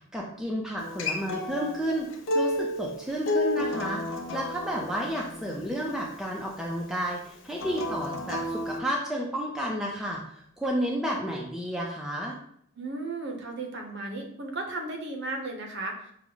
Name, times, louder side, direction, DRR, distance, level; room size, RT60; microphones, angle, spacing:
voice 1, 0.0-2.1 2.3-4.0 4.3-12.4, right 1 dB, ahead, -2 dB, 0.4 m, -31 dB
Acoustic guitar, 0.8-6.0 7.5-8.8, left 2 dB, 60° left, 0.6 m, -31 dB
voice 2, 12.8-16.0, right 2 dB, 50° right, 3 dB, 0.7 m, -35 dB
5.8 x 2.0 x 3.8 m, 0.68 s
head